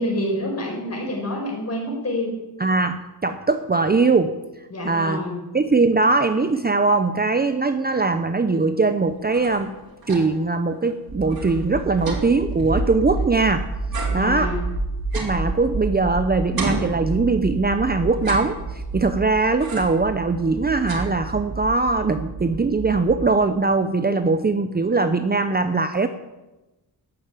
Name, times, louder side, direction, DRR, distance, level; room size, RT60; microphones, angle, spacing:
voice 1, 0.0-2.4 4.7-5.4 14.1-14.6, left 1 dB, 40° left, 0 dB, 5.1 m, -27 dB
voice 2, 2.6-4.4 4.8-5.2 5.5-9.7 10.1-13.6 14.1-14.5 15.1-26.1, right 3 dB, 25° right, 9 dB, 0.7 m, -21 dB
sound 1, 9.1-10.5 10.9-11.0 11.2-13.5 13.9-16.1 16.6-17.6 18.1-19.0 19.6-20.1 20.5-21.6, right 4 dB, 60° right, 3.4 m, -34 dB
sound 2, 11.1-23.2, right 2 dB, 80° right, 2.2 m, -30 dB
12.5 x 10.5 x 9.0 m, 1.1 s
wide cardioid pair, 165°, 40 cm